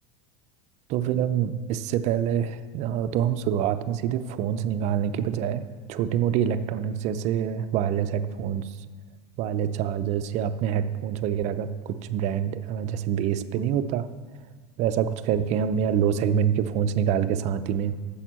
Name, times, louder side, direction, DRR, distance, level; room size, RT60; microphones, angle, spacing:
voice 1, 0.9-5.6 5.9-8.8 9.4-14.1 14.8-17.9, right 9 dB, 50° right, 11 dB, 0.6 m, -26 dB
9.0 x 7.2 x 7.4 m, 1.5 s
supercardioid pair, 105°, 15 cm